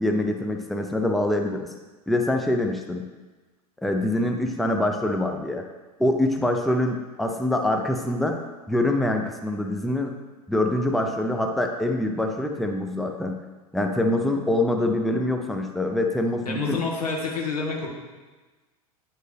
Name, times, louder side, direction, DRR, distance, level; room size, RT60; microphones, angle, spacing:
voice 1, 0.0-1.7 2.1-3.1 3.8-5.6 6.0-8.4 8.7-10.2 10.5-13.4 13.7-16.8, left 1 dB, ahead, 3 dB, 0.5 m, -24 dB
voice 2, 16.4-17.9, left 4 dB, 85° left, -1 dB, 1.4 m, -28 dB
8.8 x 4.6 x 3.3 m, 1.3 s
hypercardioid pair, 90°, 19 cm